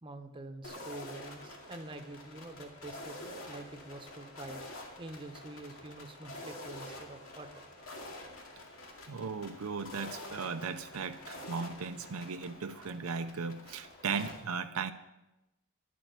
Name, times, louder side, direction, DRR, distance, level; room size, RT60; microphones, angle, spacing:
voice 1, 0.0-4.6 5.0-7.5, right 2 dB, 25° right, 6 dB, 1.1 m, -46 dB
sound 1, 0.6-14.4, left 1 dB, 65° left, 2.3 m, -47 dB
voice 2, 9.1-14.9, right 5 dB, 75° right, 8 dB, 0.6 m, -37 dB
11.5 x 8.4 x 8.2 m, 0.96 s
head